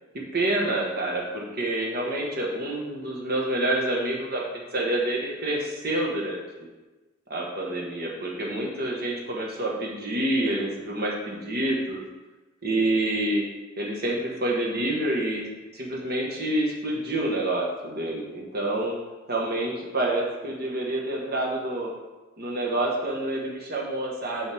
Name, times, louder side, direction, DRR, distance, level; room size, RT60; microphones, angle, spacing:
voice 1, 0.1-4.4 4.7-6.7 7.3-12.0 12.6-13.5 13.8-15.5 15.7-18.9 19.3-21.9 22.4-24.5, right 1 dB, 55° right, -2 dB, 1.6 m, -27 dB
8.5 x 5.5 x 3.6 m, 1.2 s
head